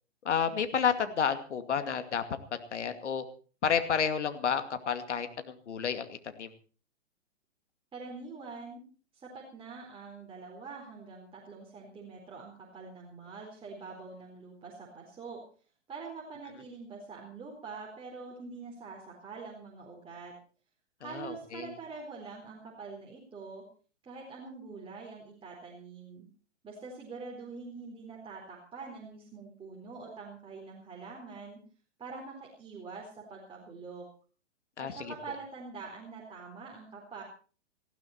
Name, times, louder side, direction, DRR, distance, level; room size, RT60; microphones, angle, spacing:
voice 1, 0.2-2.2 2.5-3.2 3.6-6.1 6.4-6.5 21.0-21.7 34.8-35.1, left 7 dB, 70° left, 9 dB, 2.4 m, -30 dB
voice 2, 7.9-8.8 9.1-15.4 15.9-20.3 21.0-23.6 24.0-26.3 26.6-31.6 32.0-34.0 34.8-37.2, right 4 dB, 15° right, -2 dB, 4.3 m, -45 dB
19.5 x 15.5 x 4.4 m, 0.39 s
hypercardioid pair, 120°, 36 cm